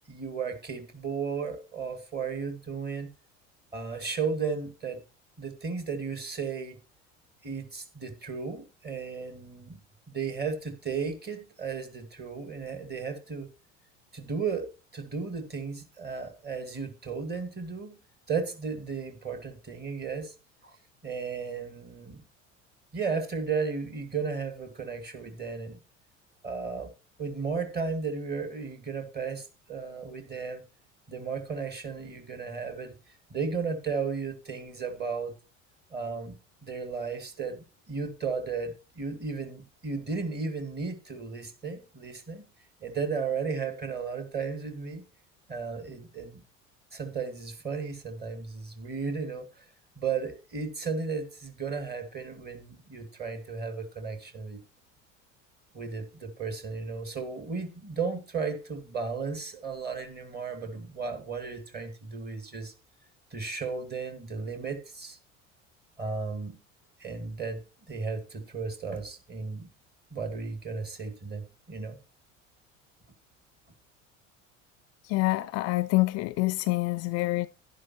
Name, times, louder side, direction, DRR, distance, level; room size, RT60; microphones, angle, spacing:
voice 1, 0.1-3.1 3.7-5.0 5.4-6.8 7.4-9.8 10.1-13.5 14.1-18.0 18.3-20.3 20.6-20.8 21.0-22.2 22.9-25.8 26.4-26.9 27.2-30.6 31.1-33.0 33.3-35.3 35.9-42.5 42.8-45.0 45.5-46.4 46.9-49.6 50.0-54.6 55.7-62.7 63.3-65.2 66.0-66.6 67.0-69.7 70.1-72.0, right 5 dB, 25° right, 2.1 m, -34 dB
voice 2, 75.1-77.5, left 20 dB, 40° left, 0.4 m, -26 dB
11.0 x 11.0 x 2.8 m
figure-of-eight pair, 70°, 39 cm